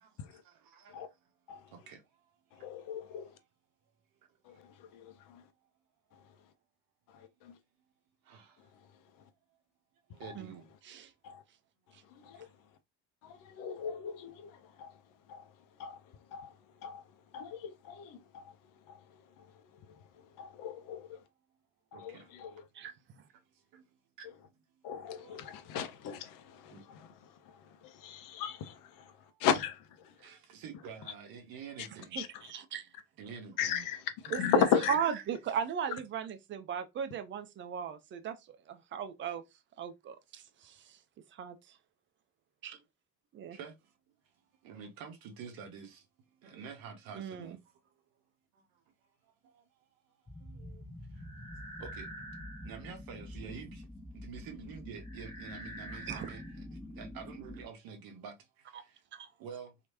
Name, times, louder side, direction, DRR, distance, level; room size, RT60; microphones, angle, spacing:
voice 1, 0.0-1.0 1.7-2.2 2.5-2.7 8.2-8.7 10.1-10.7 21.9-22.3 23.5-23.8 24.2-24.3 25.1-25.4 26.7-26.8 29.3-29.4 30.2-32.2 33.2-33.8 43.5-43.7 44.6-46.1 46.4-47.6 48.5-48.6 49.2-49.6 50.4-50.8 51.1-51.2 51.8-52.1 52.6-53.9 54.1-59.0 59.4-59.7, right 6 dB, 50° right, 0.7 m, -48 dB
voice 2, 2.5-3.4 4.4-5.5 6.1-6.4 7.1-7.6 8.6-9.2 10.1-10.4 11.2-11.4 12.0-12.5 13.2-21.2 21.9-22.7 24.8-30.3 31.8-31.9 32.2-32.4 33.6-34.9, left 8 dB, 50° left, 0.6 m, -37 dB
voice 3, 32.5-32.8 34.3-39.4 39.8-41.0 41.3-41.8 42.6-42.8 43.3-43.6 47.1-47.6 56.0-56.3 58.7-58.8 59.1-59.3, right 8 dB, 30° right, 0.4 m, -37 dB
sound 1, 50.3-57.7, left 1 dB, 10° left, 0.9 m, -46 dB
2.9 x 2.4 x 2.8 m
figure-of-eight pair, 55°, 45 cm